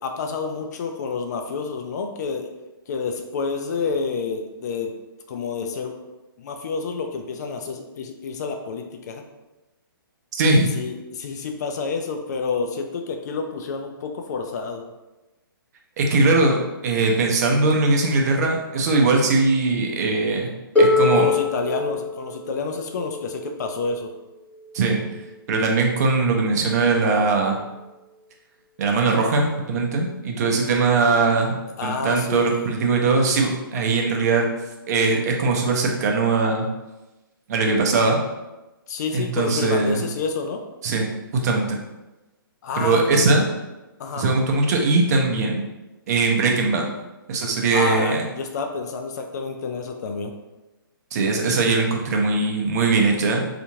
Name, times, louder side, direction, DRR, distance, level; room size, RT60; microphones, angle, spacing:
voice 1, 0.0-2.5 2.9-4.9 5.3-6.0 6.4-9.2 10.5-14.9 21.1-24.1 31.8-32.7 38.9-40.6 42.6-43.3 44.0-44.3 47.7-50.4, left 4 dB, 50° left, 4 dB, 0.4 m, -29 dB
voice 2, 10.4-10.7 16.0-20.5 20.8-21.3 24.7-25.0 25.5-27.6 28.8-31.5 31.8-34.5 34.9-36.7 37.5-38.2 39.1-40.0 40.8-41.1 41.3-41.8 42.8-43.4 44.2-45.7 46.1-46.8 47.3-48.2 51.1-53.4, right 3 dB, 45° right, 1 dB, 0.5 m, -20 dB
Harp, 20.8-26.5 27.6-27.7, left 3 dB, 10° left, 1.0 m, -25 dB
2.8 x 2.5 x 2.7 m, 1.1 s
hypercardioid pair, 140°, 12 cm